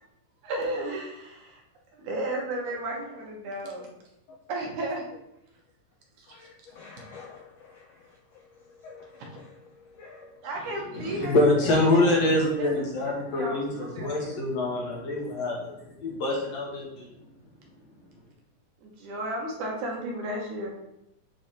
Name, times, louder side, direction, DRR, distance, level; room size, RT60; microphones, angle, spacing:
voice 1, 0.4-1.6 1.9-3.9 4.5-5.0 6.2-6.5 10.4-11.3 11.6-14.4 18.8-20.7, right 1 dB, 70° right, 2.5 m, -34 dB
voice 2, 6.3-10.4, left 4 dB, 85° left, 1.4 m, -49 dB
voice 3, 10.9-17.2, left 2 dB, 65° left, 2.0 m, -25 dB
7.8 x 3.2 x 4.2 m
omnidirectional pair, 3.7 m